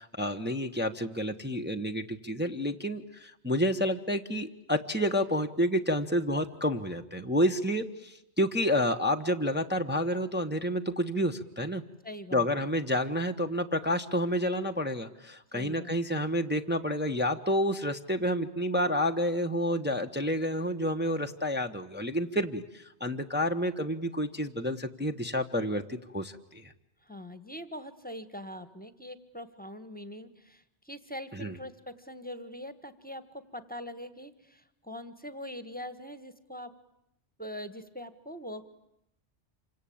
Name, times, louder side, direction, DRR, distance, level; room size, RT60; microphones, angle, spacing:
voice 1, 0.0-11.8 12.3-26.7 31.3-31.5, equal, 10° right, 4 dB, 1.0 m, -29 dB
voice 2, 12.0-12.5 15.5-15.9 27.0-36.7 37.4-38.7, equal, 10° left, 12 dB, 1.5 m, -42 dB
27.5 x 25.0 x 8.6 m, 0.82 s
omnidirectional pair, 1.2 m